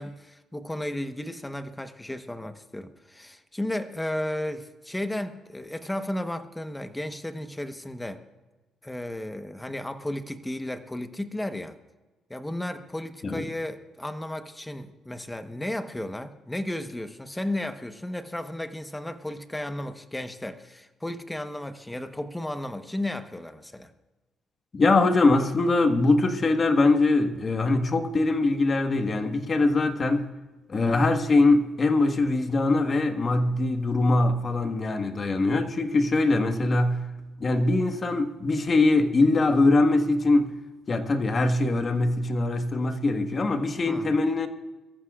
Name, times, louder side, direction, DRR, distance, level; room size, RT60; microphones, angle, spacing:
voice 1, 0.0-8.2 8.8-11.8 12.3-23.9 43.9-44.1, left 1 dB, 10° left, 1.1 m, -34 dB
voice 2, 24.7-30.3 30.7-37.0 37.4-40.5 40.9-44.5, left 2 dB, 35° left, 1.5 m, -22 dB
24.0 x 14.5 x 2.5 m
cardioid pair, 90°, 0 cm